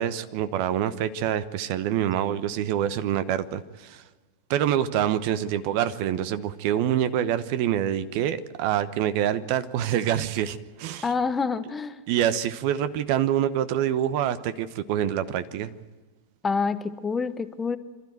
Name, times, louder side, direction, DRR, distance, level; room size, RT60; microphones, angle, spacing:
voice 1, 0.0-4.0 4.5-11.1 12.1-15.7, right 10 dB, 45° right, 14 dB, 1.1 m, -26 dB
voice 2, 11.0-12.0 16.4-17.8, left 5 dB, 15° left, 13 dB, 1.0 m, -27 dB
27.0 x 13.0 x 9.3 m, 1.3 s
figure-of-eight pair, 90°, 0 cm